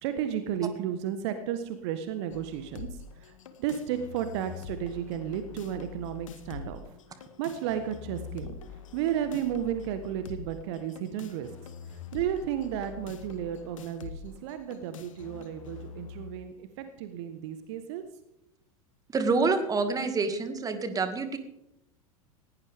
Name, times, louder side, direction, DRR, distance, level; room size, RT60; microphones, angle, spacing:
voice 1, 0.0-6.8 7.2-8.5 8.9-11.5 11.9-18.0, right 10 dB, 50° right, 9 dB, 1.4 m, -33 dB
sound 1, 2.3-16.3, left 7 dB, 65° left, 1.6 m, -45 dB
voice 2, 19.1-21.4, right 4 dB, 20° right, 9 dB, 2.2 m, -27 dB
19.5 x 17.0 x 3.6 m, 0.83 s
figure-of-eight pair, 85°, 18 cm